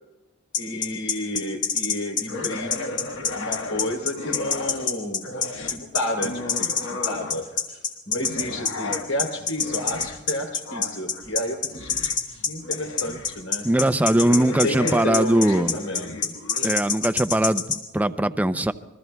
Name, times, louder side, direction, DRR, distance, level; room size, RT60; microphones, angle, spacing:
sound 1, 0.5-17.8, left 6 dB, 45° left, 3.0 m, -25 dB
voice 1, 0.6-2.9 3.3-5.3 5.7-7.8 8.1-12.1 12.5-13.7 14.3-15.4 15.7-16.3, left 1 dB, 85° left, 4 dB, 3.3 m, -31 dB
sound 2, 2.3-4.9 5.2-7.6 8.1-16.7, left 2 dB, 65° left, 1.3 m, -35 dB
voice 2, 13.6-15.8 16.6-18.7, right 1 dB, 10° right, 10 dB, 0.5 m, -21 dB
28.0 x 22.0 x 2.3 m, 1.1 s
head